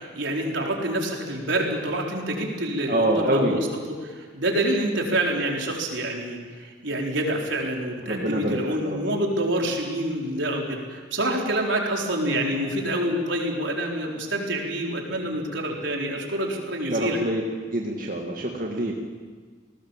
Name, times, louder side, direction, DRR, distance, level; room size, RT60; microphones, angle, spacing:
voice 1, 0.0-17.2, right 1 dB, 80° right, 0 dB, 4.6 m, -27 dB
voice 2, 2.9-3.6 8.1-9.0 16.8-17.4 17.7-18.9, right 1 dB, 45° right, 0 dB, 2.1 m, -25 dB
29.5 x 19.0 x 7.4 m, 1.5 s
head